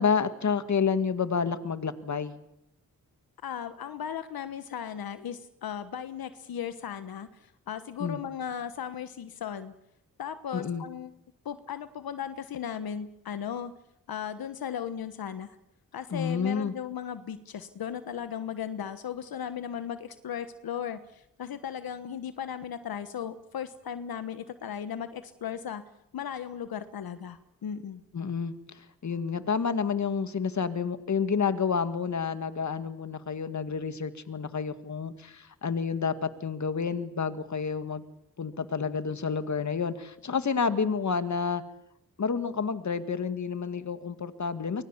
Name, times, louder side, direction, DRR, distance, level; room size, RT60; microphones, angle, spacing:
voice 1, 0.0-2.3 8.0-8.2 10.5-10.8 16.1-16.7 28.1-28.5 29.0-38.0 38.4-41.6 42.2-44.8, left 6 dB, 50° left, 11 dB, 2.0 m, -29 dB
voice 2, 3.4-9.7 10.2-11.1 11.4-13.7 14.1-15.6 15.9-25.8 26.1-28.0, left 8 dB, 80° left, 11 dB, 1.3 m, -36 dB
24.0 x 21.0 x 7.2 m, 0.82 s
cardioid pair, 75°, 35 cm